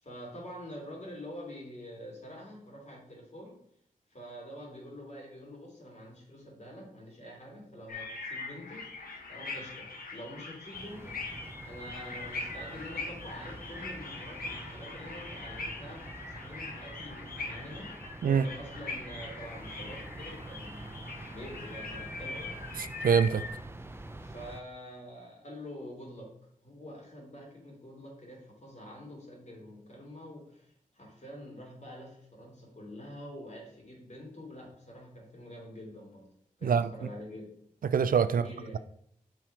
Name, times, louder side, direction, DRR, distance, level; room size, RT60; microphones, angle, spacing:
voice 1, 0.0-3.6 4.1-8.9 9.3-11.3 11.6-16.1 16.4-22.7 24.2-26.3 26.6-36.3 36.6-37.5 38.3-38.8, equal, 50° left, 3.2 m, -46 dB
sound 1, 7.9-23.5, left 3 dB, 85° left, 1.4 m, -42 dB
sound 2, 10.7-24.6, right 2 dB, 15° right, 0.7 m, -46 dB
voice 2, 23.0-23.4 36.6-36.9 37.9-38.4, right 7 dB, 75° right, 0.4 m, -24 dB
7.5 x 4.7 x 4.8 m
wide cardioid pair, 65°, 15 cm